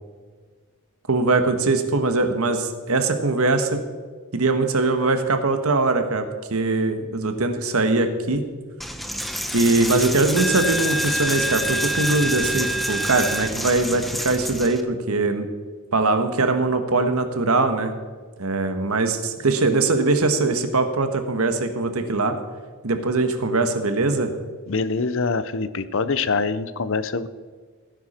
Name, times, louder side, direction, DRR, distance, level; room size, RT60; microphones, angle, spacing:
voice 1, 1.1-3.8 4.3-8.4 9.5-15.5 15.9-17.9 18.4-22.4 22.8-24.3, right 3 dB, 75° right, 7 dB, 1.4 m, -21 dB
Coin (dropping), 8.8-14.8, equal, ahead, 0.7 m, -26 dB
voice 2, 24.7-27.3, left 4 dB, 60° left, 14 dB, 0.7 m, -24 dB
17.0 x 10.5 x 4.4 m, 1.5 s
head